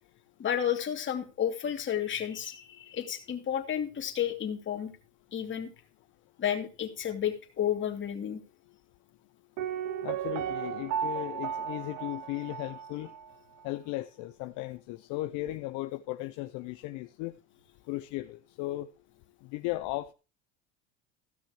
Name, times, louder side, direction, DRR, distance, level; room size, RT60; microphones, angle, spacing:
voice 1, 0.4-4.9 5.3-5.7 6.4-8.4, left 9 dB, 35° left, 2.7 m, -31 dB
Piano, 9.6-13.3 13.6-13.7, right 9 dB, 60° right, 0.9 m, -35 dB
voice 2, 10.0-13.1 13.6-17.3 17.9-18.9 19.5-20.1, left 17 dB, 60° left, 0.8 m, -36 dB
15.5 x 6.2 x 4.8 m
supercardioid pair, 105°, 34 cm